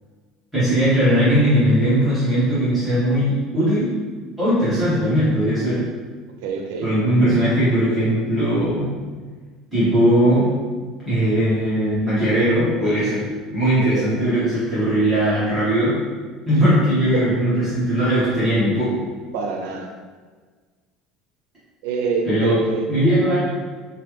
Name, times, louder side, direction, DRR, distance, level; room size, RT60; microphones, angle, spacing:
voice 1, 0.5-3.9 4.4-5.8 6.8-8.8 9.7-10.5 11.0-13.2 13.5-16.0 16.4-19.0 22.2-22.6 22.9-23.4, equal, 5° right, -14 dB, 1.1 m, -19 dB
voice 2, 6.4-6.9 13.9-14.1 17.1-17.2 19.3-19.9 21.8-22.9, right 5 dB, 85° right, 2 dB, 0.4 m, -25 dB
3.1 x 2.2 x 3.1 m, 1.5 s
cardioid pair, 170°, 0 cm